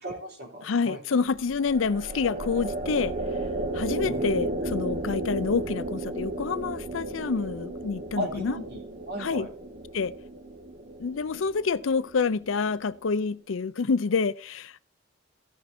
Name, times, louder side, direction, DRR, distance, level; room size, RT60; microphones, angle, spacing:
voice 1, 0.0-1.2 4.0-4.3 8.2-9.5, equal, 55° right, 3.5 m, -36 dB
voice 2, 0.6-3.1 3.7-8.6 9.2-9.5 9.9-10.1 11.0-14.8, left 5 dB, 85° left, 0.5 m, -27 dB
sound 1, 1.3-12.7, right 1 dB, 40° right, 0.9 m, -34 dB
16.0 x 5.5 x 4.3 m
head